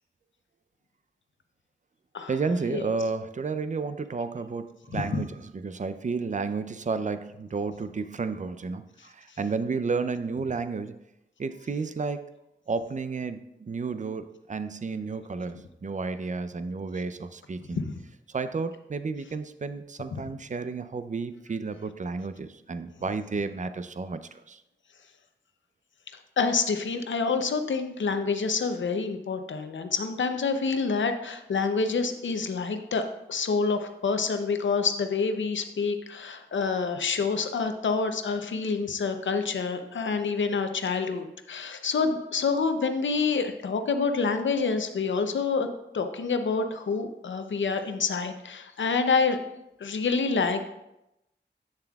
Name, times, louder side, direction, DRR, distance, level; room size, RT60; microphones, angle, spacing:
voice 1, 2.3-11.0 11.4-12.3 12.7-17.8 18.3-24.6, right 4 dB, 40° right, 11 dB, 0.5 m, -32 dB
voice 2, 4.9-5.2 17.8-17.9 20.1-20.2 26.4-33.0 33.3-45.7 45.9-49.4 49.8-50.7, left 4 dB, 90° left, 7 dB, 0.6 m, -27 dB
9.0 x 7.0 x 2.3 m, 0.88 s
cardioid pair, 55°, 19 cm